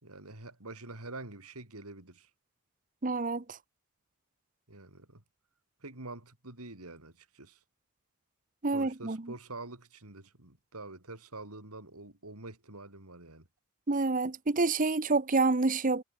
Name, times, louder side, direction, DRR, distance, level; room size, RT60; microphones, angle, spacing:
voice 1, 0.0-2.3 4.7-5.2 5.8-7.6 8.7-13.5, right 2 dB, 80° right, 4.2 m, -46 dB
voice 2, 3.0-3.6 8.6-9.2 13.9-16.0, right 3 dB, 35° right, 0.9 m, -28 dB
head